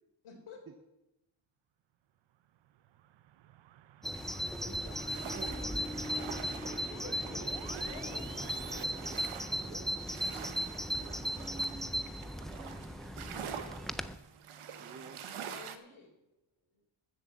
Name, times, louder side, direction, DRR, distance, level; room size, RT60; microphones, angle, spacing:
voice 1, 0.2-0.6 7.0-7.5 7.9-9.4 15.4-16.1, left 4 dB, 80° left, 1 dB, 4.0 m, -51 dB
sound 1, 2.3-8.8, right 12 dB, 65° right, 0.6 m, -53 dB
Bird vocalization bird call bird song, 4.0-14.2, equal, ahead, 0.3 m, -37 dB
sound 2, 4.1-15.8, right 8 dB, 85° right, 1.1 m, -47 dB
voice 2, 4.6-8.0 9.6-9.9 13.2-13.5 14.8-15.2, right 5 dB, 30° right, 6 dB, 0.7 m, -51 dB
voice 3, 12.0-13.7 16.5-16.8, left 2 dB, 50° left, -1 dB, 5.0 m, -68 dB
13.5 x 7.6 x 7.4 m, 0.95 s
wide cardioid pair, 160°, 49 cm